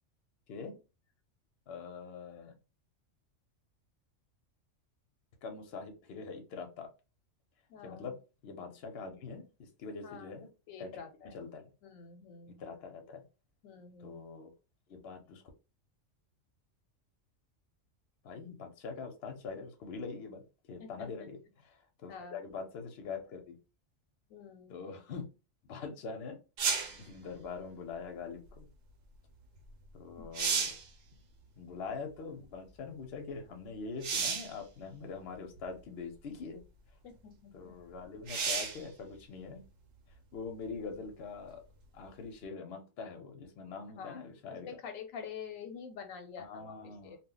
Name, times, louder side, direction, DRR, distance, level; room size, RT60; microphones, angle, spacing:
voice 1, 1.7-2.6 5.4-6.9 7.8-8.1 8.4-10.5 10.8-11.7 12.6-13.2 14.0-14.5 14.9-15.4 18.2-20.4 20.7-23.6 24.7-25.3 25.7-26.4 26.9-28.7 29.9-30.7 31.6-36.6 37.5-39.6 40.3-41.6 41.9-44.7 46.4-47.2, left 5 dB, 60° left, 4 dB, 0.9 m, -43 dB
voice 2, 7.7-8.1 10.0-10.3 10.7-11.4 11.8-12.6 13.6-14.2 20.8-21.3 22.1-22.4 24.3-24.9 37.0-37.7 44.0-44.2 44.6-46.7 47.0-47.2, left 6 dB, 90° left, 6 dB, 1.0 m, -47 dB
sound 1, 26.6-27.0 29.7-29.8 30.2-30.9 34.0-34.6 35.6-35.7 38.3-38.8 42.4-42.5, right 5 dB, 85° right, 1.1 m, -32 dB
2.3 x 2.1 x 3.7 m, 0.31 s
omnidirectional pair, 1.3 m